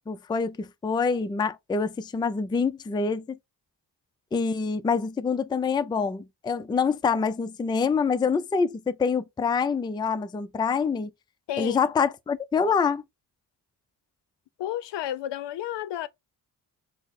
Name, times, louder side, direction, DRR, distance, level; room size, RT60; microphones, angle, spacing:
voice 1, 0.0-3.4 4.3-11.1 11.6-13.0, left 5 dB, 10° left, 0.3 m, -26 dB
voice 2, 11.5-11.8 14.6-16.1, left 12 dB, 75° left, 0.6 m, -31 dB
4.5 x 2.1 x 4.0 m
cardioid pair, 75°, 43 cm